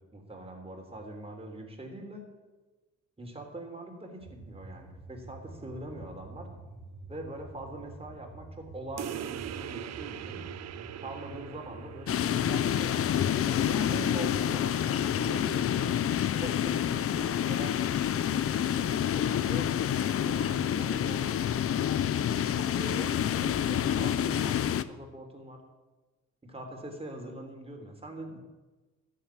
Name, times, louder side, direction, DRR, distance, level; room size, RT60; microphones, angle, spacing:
voice 1, 0.1-2.3 3.2-6.5 7.1-10.4 11.0-15.9 16.4-17.7 18.8-21.4 22.6-25.6 26.4-28.4, right 1 dB, 20° right, 2 dB, 3.5 m, -43 dB
sound 1, 4.2-14.0, right 2 dB, 85° right, 2.9 m, -48 dB
sound 2, 9.0-14.0, right 11 dB, 60° right, 0.7 m, -42 dB
sound 3, 12.1-24.8, left 10 dB, 50° left, 0.7 m, -28 dB
voice 2, 20.3-20.4, left 4 dB, 85° left, 3 dB, 2.7 m, -51 dB
13.5 x 7.6 x 9.2 m, 1.2 s
cardioid pair, 90°, 30 cm